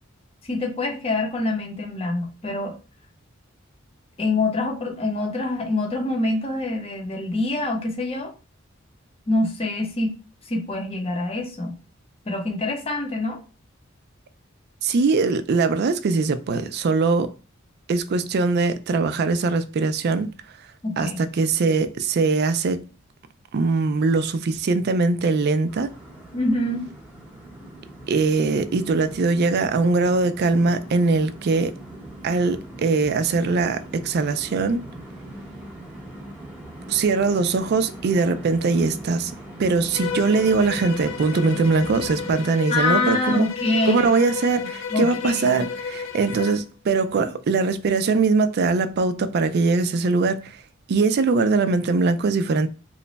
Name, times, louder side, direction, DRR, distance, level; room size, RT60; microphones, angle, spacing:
voice 1, 0.5-2.7 4.2-8.3 9.3-10.2 10.5-11.7 12.3-13.4 20.8-21.2 26.3-26.9 42.7-44.1 44.6-45.5, left 2 dB, 30° left, 0.7 m, -25 dB
voice 2, 14.8-17.3 17.9-20.3 21.0-22.8 23.5-25.9 28.1-31.7 32.2-34.8 36.9-39.3 39.6-43.4 43.9-50.5 50.9-52.7, right 4 dB, 50° right, 0.3 m, -21 dB
sound 1, 25.7-42.3, right 1 dB, 5° right, 0.9 m, -41 dB
Bowed string instrument, 39.9-46.7, left 6 dB, 65° left, 0.4 m, -32 dB
3.0 x 2.2 x 3.9 m
head